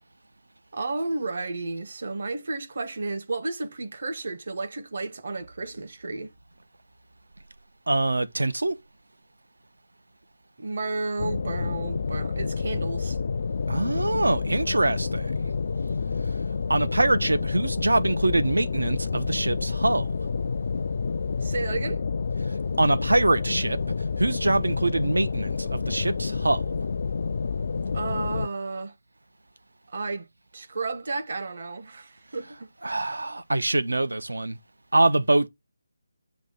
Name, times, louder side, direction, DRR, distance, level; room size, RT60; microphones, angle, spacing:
voice 1, 0.7-6.3 10.6-13.2 21.4-22.0 27.9-28.9 29.9-30.3 30.5-32.7, right 3 dB, 50° right, 1.1 m, -32 dB
voice 2, 7.9-8.8 13.7-15.5 16.7-20.1 22.8-23.8 24.2-26.8 32.8-34.6 34.9-35.5, right 2 dB, 75° right, 0.7 m, -24 dB
sound 1, 11.2-28.5, left 5 dB, 50° left, 0.3 m, -29 dB
7.3 x 2.9 x 5.7 m
figure-of-eight pair, 155°, 0 cm